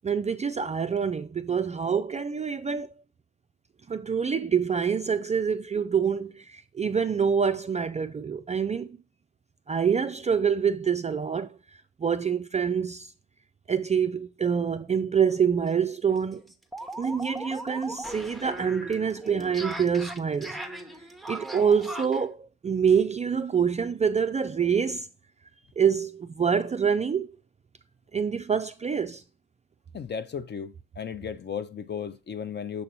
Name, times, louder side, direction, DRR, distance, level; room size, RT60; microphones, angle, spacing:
voice 1, 0.0-2.9 3.9-9.0 9.7-11.6 12.0-13.1 13.7-16.4 17.0-20.6 21.3-25.1 25.8-27.3 28.1-29.2, right 7 dB, 25° right, 0.3 m, -26 dB
sound 1, 15.3-15.4 15.7-15.8 16.1-22.2, right 1 dB, ahead, 0.8 m, -38 dB
voice 2, 29.9-32.8, left 7 dB, 35° left, 0.6 m, -35 dB
6.7 x 2.9 x 5.3 m
cardioid pair, 90°, 30 cm